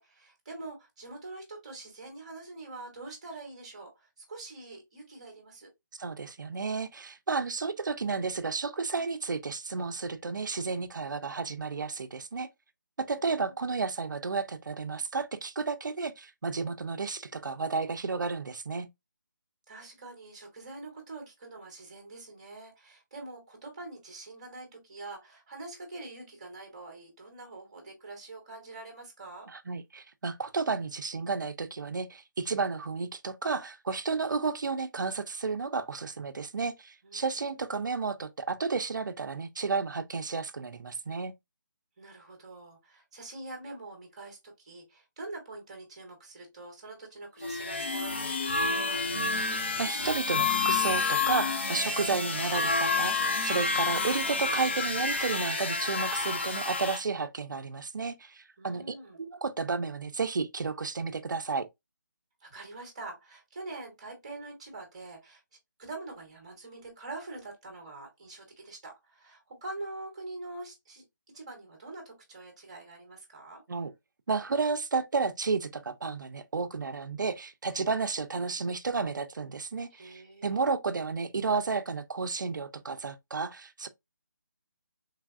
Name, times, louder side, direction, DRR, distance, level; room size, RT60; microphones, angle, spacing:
voice 1, 0.0-5.7 13.1-13.6 19.7-29.5 37.0-37.6 42.0-49.0 58.6-59.2 62.4-65.4 65.8-73.6 79.9-80.7, right 2 dB, 20° right, 0.8 m, -45 dB
voice 2, 6.0-12.5 13.0-18.9 29.5-41.3 49.1-61.7 73.7-73.9 74.3-83.9, right 4 dB, 70° right, 0.5 m, -32 dB
sound 1, 47.4-57.0, left 4 dB, 35° left, 0.4 m, -29 dB
3.3 x 2.4 x 2.3 m
hypercardioid pair, 175°, 11 cm